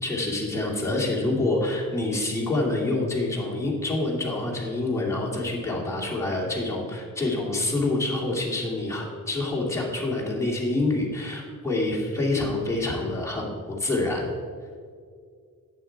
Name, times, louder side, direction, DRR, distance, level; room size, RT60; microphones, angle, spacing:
voice 1, 0.0-14.3, left 2 dB, 10° left, -4 dB, 2.6 m, -27 dB
11.5 x 8.7 x 4.7 m, 2.1 s
wide cardioid pair, 135°, 33 cm